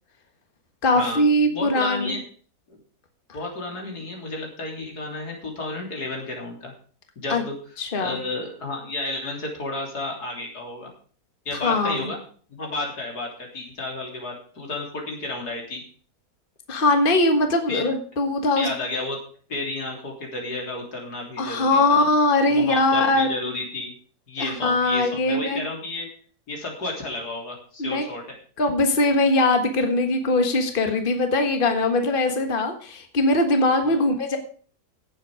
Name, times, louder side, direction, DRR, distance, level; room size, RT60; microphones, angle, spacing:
voice 1, 0.8-2.2 7.3-7.4 7.8-8.2 11.6-12.1 16.7-18.7 21.4-23.3 24.4-25.6 27.8-28.1 28.6-34.4, left 2 dB, 35° left, 5 dB, 1.7 m, -21 dB
voice 2, 1.5-2.2 2.7-2.8 3.3-6.7 7.2-7.5 7.9-10.9 11.5-12.2 12.5-15.8 17.7-17.8 18.6-19.2 19.5-22.1 22.5-24.0 24.3-26.1 26.5-28.3 33.8-34.0, left 2 dB, 90° left, 0 dB, 4.0 m, -32 dB
16.0 x 7.7 x 5.0 m, 0.43 s
omnidirectional pair, 1.6 m